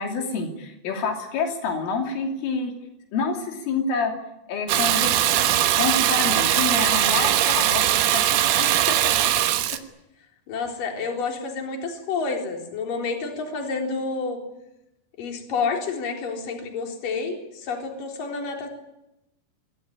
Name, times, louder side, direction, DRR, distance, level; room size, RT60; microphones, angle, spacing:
voice 1, 0.0-2.7 3.1-4.1 4.5-8.6, left 4 dB, 80° left, 3 dB, 5.4 m, -28 dB
Water tap faucet / Bathtub (filling or washing), 4.7-9.8, right 12 dB, 80° right, 3.8 m, -20 dB
voice 2, 8.6-9.3 10.5-14.4 15.2-18.7, left 4 dB, 45° left, 2 dB, 5.3 m, -29 dB
26.0 x 18.0 x 9.9 m, 0.89 s
omnidirectional pair, 5.6 m